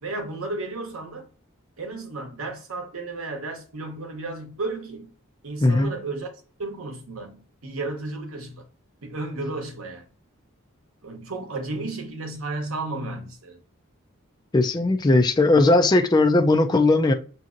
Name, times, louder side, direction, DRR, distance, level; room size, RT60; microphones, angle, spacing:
voice 1, 0.0-1.3 1.8-5.1 5.4-8.7 9.0-10.1 11.0-13.6, right 2 dB, 75° right, 0.9 m, -33 dB
voice 2, 5.6-5.9 14.5-17.1, left 2 dB, 20° left, 0.3 m, -18 dB
6.1 x 2.7 x 2.5 m
head